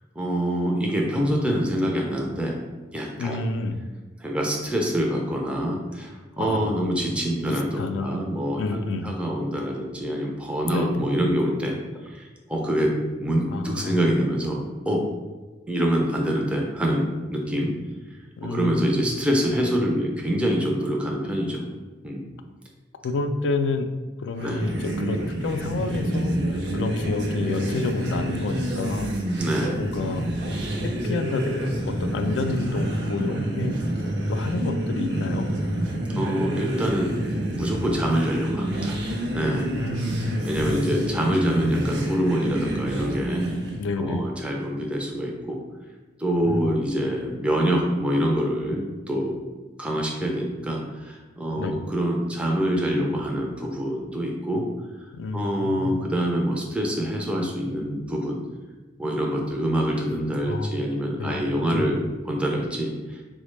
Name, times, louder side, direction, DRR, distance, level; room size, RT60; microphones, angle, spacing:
voice 1, 0.2-2.6 2.9-3.4 4.2-11.8 12.0-15.0 15.7-17.7 18.4-21.6 22.0-22.2 24.4-24.6 29.4-29.8 36.1-37.1 37.6-39.0 39.3-39.7 40.4-43.4 44.0-45.6 46.2-49.4 49.8-54.7 55.3-58.4 59.0-63.2, equal, 5° right, -1 dB, 0.4 m, -25 dB
voice 2, 3.2-3.8 6.4-6.8 7.5-8.2 8.6-9.1 10.7-11.0 13.5-14.0 18.4-18.9 23.0-23.9 24.2-29.1 29.8-30.3 30.8-33.7 34.3-35.5 39.7-40.8 43.8-44.3 46.5-46.7 51.6-51.8 55.1-56.0 60.4-60.7 61.2-61.4 61.7-61.9, left 3 dB, 80° left, 8 dB, 0.3 m, -29 dB
sound 1, 24.3-43.8, right 1 dB, 65° right, 0.5 m, -28 dB
4.0 x 2.1 x 3.1 m, 1.3 s
head